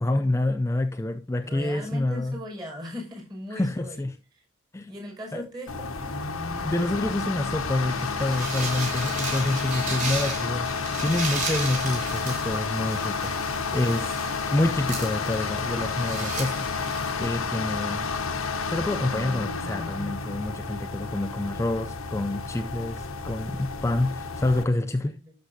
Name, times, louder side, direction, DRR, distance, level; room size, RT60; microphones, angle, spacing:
voice 1, 0.0-2.4 3.5-4.2 4.7-4.9 5.3-5.4 6.6-14.2 14.5-16.7 17.2-18.1 18.7-25.2, left 2 dB, 15° left, 0.3 m, -27 dB
voice 2, 1.4-4.1 4.3-4.4 4.8-6.1 24.7-24.8 25.2-25.3, equal, 20° right, 5.6 m, -39 dB
sound 1, 5.7-24.6, left 4 dB, 90° left, 1.3 m, -31 dB
sound 2, 7.9-17.4, right 3 dB, 35° right, 4.5 m, -36 dB
11.5 x 6.5 x 2.7 m
head